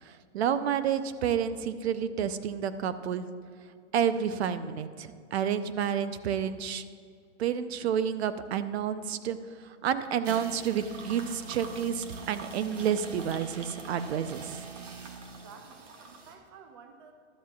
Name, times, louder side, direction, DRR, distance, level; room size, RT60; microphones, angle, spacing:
voice 1, 0.0-3.3 3.9-6.8 7.4-9.4 9.6-14.6, right 8 dB, 60° right, 12 dB, 0.7 m, -30 dB
sound 1, 10.0-16.3, right 5 dB, 85° right, 1.7 m, -43 dB
voice 2, 15.4-17.1, right 6 dB, 25° right, 6 dB, 0.4 m, -52 dB
12.5 x 12.0 x 2.4 m, 2.2 s
hypercardioid pair, 150°, 36 cm